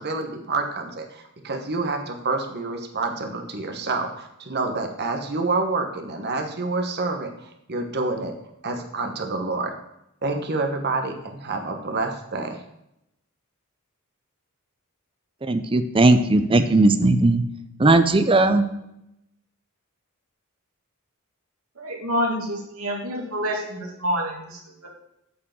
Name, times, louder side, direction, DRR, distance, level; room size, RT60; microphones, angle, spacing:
voice 1, 0.0-7.3 7.7-8.3 8.6-9.7 10.2-12.6, right 3 dB, 50° right, 4 dB, 1.3 m, -28 dB
voice 2, 15.4-17.4 17.8-18.6, right 2 dB, 25° right, 10 dB, 0.6 m, -17 dB
voice 3, 21.8-24.9, equal, 80° right, -2 dB, 2.5 m, -28 dB
8.5 x 4.8 x 7.4 m, 0.83 s
head